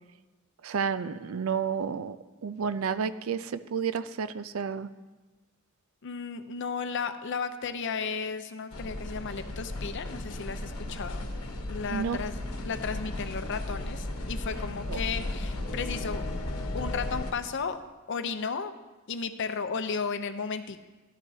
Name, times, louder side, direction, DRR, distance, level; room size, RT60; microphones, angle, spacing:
voice 1, 0.6-2.2 2.4-4.9 11.9-12.2 14.9-15.0, right 6 dB, 75° right, 13 dB, 0.4 m, -31 dB
voice 2, 6.0-11.3 11.7-12.4 12.6-16.3 16.7-17.8 18.1-18.7 19.1-20.8, left 5 dB, 60° left, 10 dB, 0.6 m, -34 dB
sound 1, 8.7-17.3, left 1 dB, 85° left, 1.1 m, -35 dB
12.5 x 12.0 x 2.8 m, 1.2 s
head